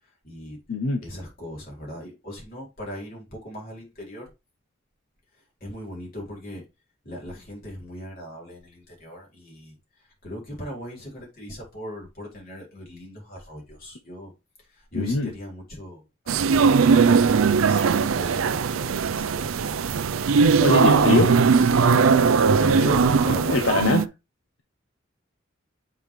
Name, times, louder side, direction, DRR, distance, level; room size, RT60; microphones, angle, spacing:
voice 1, 0.0-0.6 1.0-4.3 5.6-6.6 7.0-14.3 14.6-17.1 17.5-20.3 22.6-23.7, equal, 45° left, 4.3 m, -38 dB
voice 2, 0.7-1.0 14.9-15.3 20.6-21.3 23.5-24.0, left 3 dB, 70° left, 0.9 m, -22 dB
sound 1, 16.3-24.1, right 5 dB, 80° right, 0.5 m, -19 dB
7.4 x 4.6 x 3.2 m
head